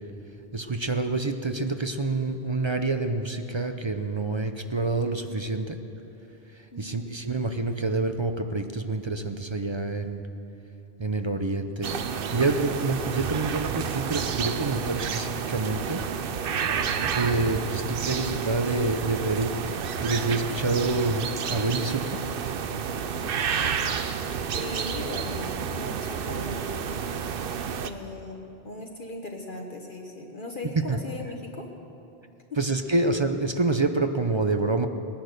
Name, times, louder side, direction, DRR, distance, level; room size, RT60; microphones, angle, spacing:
voice 1, 0.5-5.8 6.8-10.2 11.0-16.0 17.1-19.5 20.0-22.2 30.9-31.0 32.6-34.9, right 3 dB, 30° right, 7 dB, 0.6 m, -27 dB
voice 2, 6.7-7.2 16.9-17.2 24.5-26.9 27.8-31.7, left 2 dB, 50° left, 1 dB, 1.2 m, -38 dB
sound 1, 11.8-27.9, right 7 dB, 60° right, 0.8 m, -30 dB
19.5 x 10.5 x 6.6 m, 3.0 s
omnidirectional pair, 1.1 m